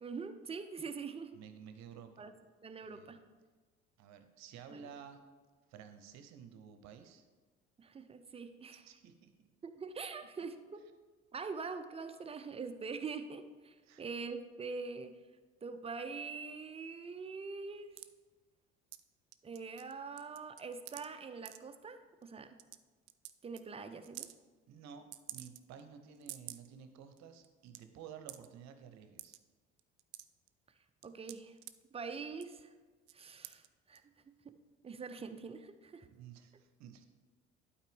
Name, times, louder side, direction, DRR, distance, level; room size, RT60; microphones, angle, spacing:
voice 1, 0.0-1.4 2.2-2.3 2.6-3.2 4.7-4.9 7.8-8.8 9.6-10.8 11.3-15.2 15.6-17.9 19.4-22.6 23.4-24.3 31.0-31.6 31.9-32.7 33.1-34.0 34.4-34.6 34.8-36.1, right 4 dB, 15° right, 9 dB, 0.6 m, -44 dB
voice 2, 1.3-2.3 2.9-3.2 4.0-5.2 5.7-7.2 8.9-9.5 13.9-14.0 24.7-29.4 36.1-37.1, right 7 dB, 50° right, 9 dB, 0.9 m, -53 dB
sound 1, 18.0-18.1 18.9-19.0 19.3-19.9 20.2-21.1 21.5-21.6 22.2-22.3 22.6-22.8 23.1-23.3 23.6-23.7 24.0-24.3 25.1-25.8 26.2-26.7 27.1-27.2 27.4-27.8 28.3-28.5 29.2-29.4 29.8-30.5 31.0-31.7 32.3-32.6 33.1-33.2 33.4-33.7 34.0-34.1, right 15 dB, 70° right, 0.5 m, -48 dB
11.5 x 4.3 x 3.5 m, 1.4 s
figure-of-eight pair, 55°, 34 cm